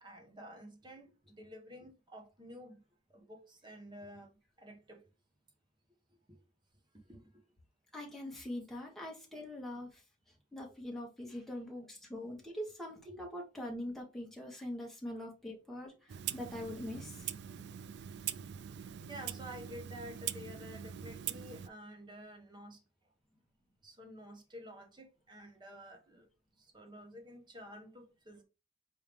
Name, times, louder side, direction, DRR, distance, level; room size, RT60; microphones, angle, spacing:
voice 1, 0.0-2.7 3.1-4.3 4.6-5.0 6.3-6.4 7.1-7.3 19.1-22.8 23.8-26.3 26.7-28.4, equal, 25° right, 1.1 m, -50 dB
voice 2, 7.9-9.9 10.5-15.9 16.3-17.1, left 1 dB, ahead, 1.4 m, -43 dB
Clock, 16.1-21.7, right 10 dB, 65° right, 0.3 m, -42 dB
4.5 x 3.4 x 3.4 m
head